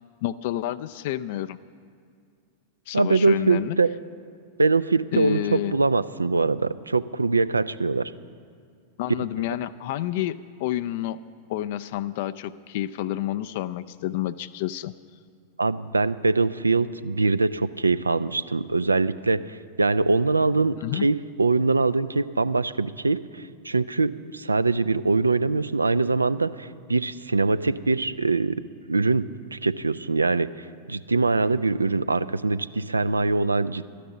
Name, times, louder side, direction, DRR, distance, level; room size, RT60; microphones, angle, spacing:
voice 1, 0.2-1.6 2.9-3.8 5.1-5.8 9.0-11.2 11.5-14.9 20.8-21.1, left 13 dB, 50° left, 13 dB, 0.3 m, -29 dB
voice 2, 2.9-3.9 4.6-8.1 15.6-19.4 19.8-28.6 28.9-30.5 30.9-33.9, right 3 dB, 80° right, 15 dB, 0.3 m, -23 dB
13.0 x 10.0 x 7.1 m, 2.3 s
figure-of-eight pair, 90°, 0 cm